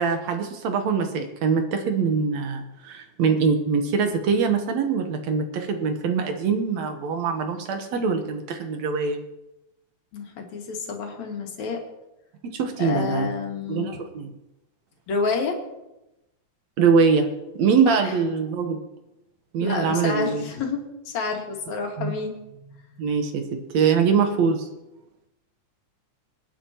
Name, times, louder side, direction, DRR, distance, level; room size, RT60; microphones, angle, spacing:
voice 1, 0.0-9.2 12.5-13.3 13.7-14.3 16.8-17.3 17.6-18.8 19.5-20.5 22.0-22.1 23.0-23.4 23.7-24.7, right 5 dB, 65° right, 6 dB, 2.2 m, -23 dB
voice 2, 10.1-11.8 12.8-14.0 15.1-15.6 17.9-18.1 19.6-22.4, left 4 dB, 65° left, 1 dB, 3.1 m, -29 dB
26.0 x 10.0 x 2.9 m, 0.94 s
omnidirectional pair, 3.5 m